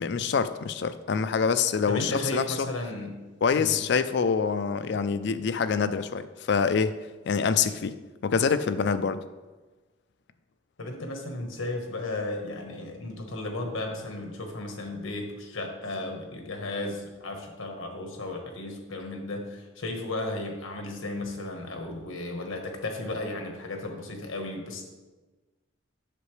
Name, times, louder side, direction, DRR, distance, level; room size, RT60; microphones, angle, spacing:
voice 1, 0.0-2.7 3.4-7.0 7.3-8.0 8.2-9.2, left 6 dB, 55° left, 12 dB, 0.4 m, -26 dB
voice 2, 1.9-3.2 3.6-3.8 10.8-24.8, left 2 dB, 90° left, 3 dB, 1.3 m, -34 dB
8.3 x 6.7 x 3.2 m, 1.2 s
head